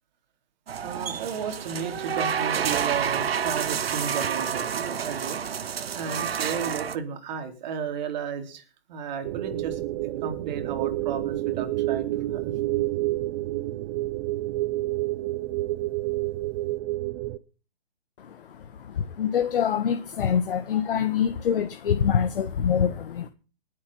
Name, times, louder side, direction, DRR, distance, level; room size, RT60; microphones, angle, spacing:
sound 1, 0.7-7.0, right 8 dB, 70° right, 1.3 m, -29 dB
voice 1, 0.8-5.4 5.9-8.6 8.9-9.8 10.2-12.1 12.3-12.5, right 7 dB, 45° right, 3.9 m, -33 dB
sound 2, 9.2-17.4, right 17 dB, 30° right, 1.0 m, -29 dB
voice 2, 18.2-23.3, left 8 dB, 60° left, 1.7 m, -25 dB
20.0 x 8.6 x 5.6 m
hypercardioid pair, 140°, 31 cm